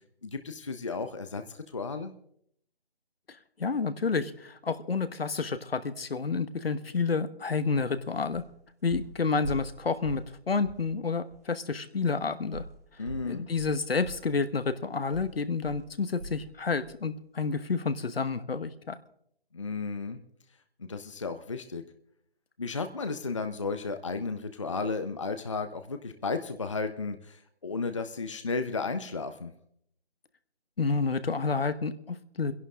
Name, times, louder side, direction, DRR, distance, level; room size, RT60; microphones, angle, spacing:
voice 1, 0.2-2.1 13.0-13.5 19.5-20.2 20.8-21.8 22.6-29.5, left 4 dB, 30° left, 8 dB, 0.6 m, -34 dB
voice 2, 3.3-8.4 8.8-12.6 13.2-19.0 30.8-32.5, left 4 dB, 70° left, 13 dB, 1.2 m, -30 dB
sound 1, 7.8-7.9 8.3-8.6 8.9-10.4 10.6-10.9 11.3-11.4 12.5-16.5 16.8-17.0 17.4-17.5, right 1 dB, 15° right, 1.0 m, -42 dB
27.0 x 11.0 x 3.7 m, 0.69 s
figure-of-eight pair, 165°, 31 cm